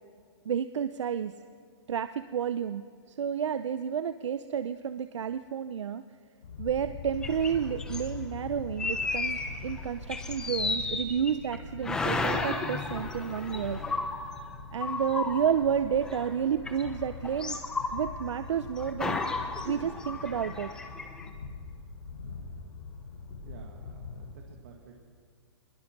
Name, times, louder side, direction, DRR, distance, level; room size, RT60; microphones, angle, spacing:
voice 1, 0.5-1.3 1.9-6.0 6.6-13.8 14.7-17.6 17.9-19.2 19.7-20.7, right 8 dB, 90° right, 11 dB, 0.7 m, -31 dB
sound 1, 6.4-24.3, left 4 dB, 70° left, 6.2 m, -43 dB
sound 2, 7.2-8.1 8.8-9.8 10.1-11.6 11.8-16.4 16.7-18.5 18.7-21.3, left 3 dB, 5° left, 0.8 m, -33 dB
voice 2, 23.4-24.9, right 6 dB, 40° right, 1 dB, 2.0 m, -51 dB
21.5 x 21.5 x 6.1 m, 2.1 s
hypercardioid pair, 175°, 15 cm